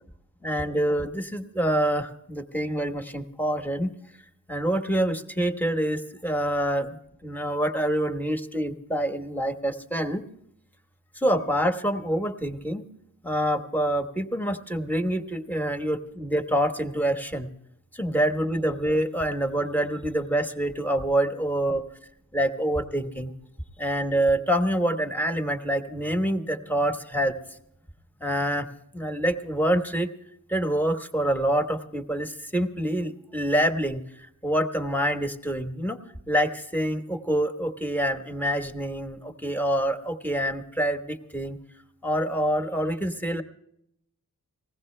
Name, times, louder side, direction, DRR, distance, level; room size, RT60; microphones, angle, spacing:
voice 1, 0.4-3.9 4.5-7.0 7.2-10.2 11.1-12.9 13.2-17.5 17.9-21.8 22.3-23.3 23.8-27.4 28.2-28.7 28.9-30.1 30.5-36.0 36.3-41.6 42.0-43.4, right 1 dB, 5° left, 5 dB, 1.1 m, -26 dB
20.0 x 16.0 x 3.3 m, 0.76 s
wide cardioid pair, 110°, 36 cm